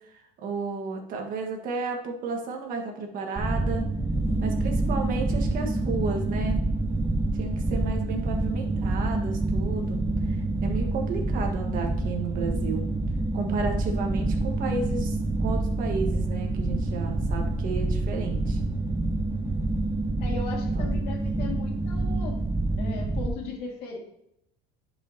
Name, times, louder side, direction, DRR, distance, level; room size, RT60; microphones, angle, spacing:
voice 1, 0.1-3.9 4.4-6.6 7.3-12.9 13.3-18.6 20.7-21.0, right 4 dB, 50° right, 3 dB, 1.6 m, -33 dB
sound 1, 3.4-23.3, right 2 dB, 15° right, 1.5 m, -27 dB
voice 2, 20.2-22.4 22.8-24.0, left 4 dB, 60° left, 0 dB, 2.2 m, -37 dB
10.5 x 5.5 x 2.9 m, 0.77 s
cardioid pair, 145°, 19 cm